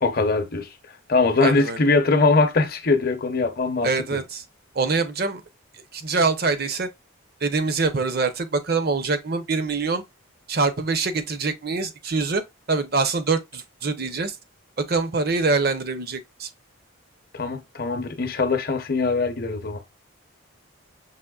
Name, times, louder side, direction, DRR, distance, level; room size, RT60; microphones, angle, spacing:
voice 1, 0.0-0.7 1.1-4.2 17.3-19.8, left 3 dB, 45° left, 0.7 m, -22 dB
voice 2, 1.4-1.8 3.8-4.4 4.7-5.4 5.9-6.9 7.4-10.0 10.5-12.4 12.7-14.4 14.9-16.5, right 4 dB, 45° right, 0.6 m, -24 dB
5.7 x 3.0 x 2.3 m
head